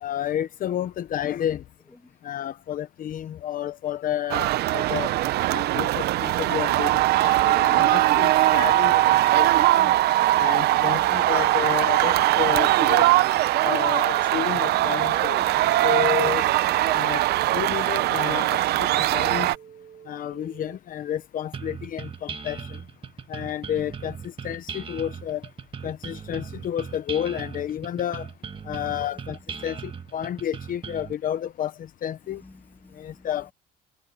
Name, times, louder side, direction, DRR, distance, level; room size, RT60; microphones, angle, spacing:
voice 1, 0.0-1.6 2.2-5.1 5.5-9.9 10.4-13.1 13.6-15.4 15.8-16.4 16.8-17.2 17.5-19.5 20.1-22.8 23.3-25.4 25.8-28.3 28.7-32.4 33.0-33.5, left 10 dB, 55° left, 1.0 m, -31 dB
sound 1, 4.3-19.6, right 15 dB, 70° right, 0.7 m, -21 dB
voice 2, 10.8-11.9 14.7-17.0 28.6-29.0 32.3-33.3, left 2 dB, 10° left, 1.7 m, -50 dB
Telephone, 13.2-14.8 16.2-17.8 19.2-20.8, right 8 dB, 45° right, 5.7 m, -48 dB
sound 2, 21.5-31.1, right 6 dB, 30° right, 1.8 m, -38 dB
cardioid pair, 110°, 17 cm